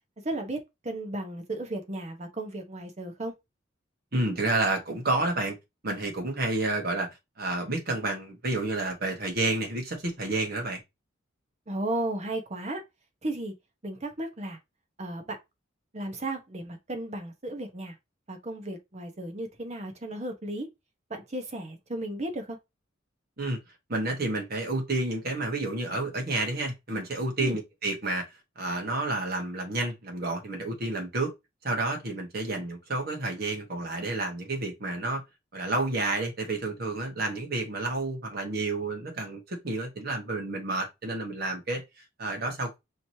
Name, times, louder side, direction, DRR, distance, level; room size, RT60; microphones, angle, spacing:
voice 1, 0.2-3.3 11.7-12.8 13.2-13.5 13.8-14.6 15.0-15.4 15.9-18.0 18.3-20.7 21.3-22.6 27.4-27.6, right 1 dB, 35° right, 1.0 m, -34 dB
voice 2, 4.1-5.6 5.8-7.1 7.4-10.8 23.4-23.6 23.9-28.2 28.6-31.3 31.6-35.2 35.5-41.8 42.2-42.8, right 2 dB, 50° right, 1.4 m, -30 dB
5.1 x 3.1 x 2.8 m
head